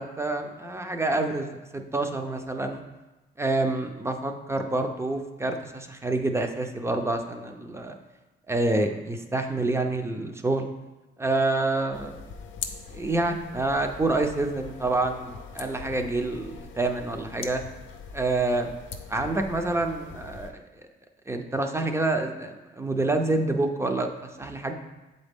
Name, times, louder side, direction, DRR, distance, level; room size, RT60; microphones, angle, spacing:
voice 1, 0.0-2.8 3.4-8.0 8.5-10.7 11.2-12.2 12.9-17.6 18.1-18.7 19.1-20.6 21.3-24.7, right 2 dB, 15° right, 5 dB, 0.6 m, -27 dB
sound 1, 11.9-20.5, left 6 dB, 75° left, 0.6 m, -42 dB
7.3 x 4.0 x 3.6 m, 1.1 s
cardioid pair, 90°, 20 cm